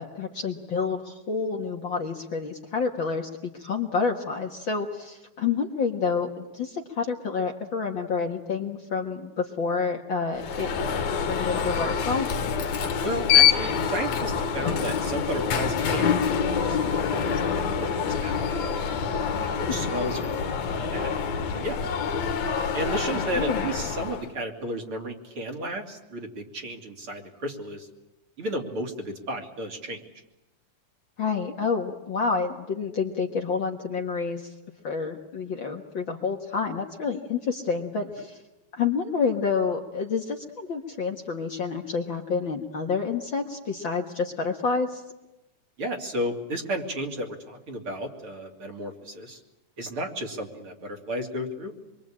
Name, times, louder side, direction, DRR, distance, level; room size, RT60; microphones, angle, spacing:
voice 1, 0.0-10.7 11.2-12.3 19.6-19.8 23.1-23.7 31.2-34.4 34.8-38.4 38.7-45.0, left 5 dB, 50° left, 2 dB, 1.9 m, -28 dB
Alarm, 10.4-24.3, left 7 dB, 70° left, 2.7 m, -26 dB
voice 2, 13.0-18.6 19.4-21.1 21.5-21.8 22.7-27.9 28.4-30.0 45.8-49.4 49.8-51.7, right 1 dB, 45° right, 2 dB, 3.6 m, -33 dB
26.5 x 23.5 x 8.8 m, 0.98 s
omnidirectional pair, 3.4 m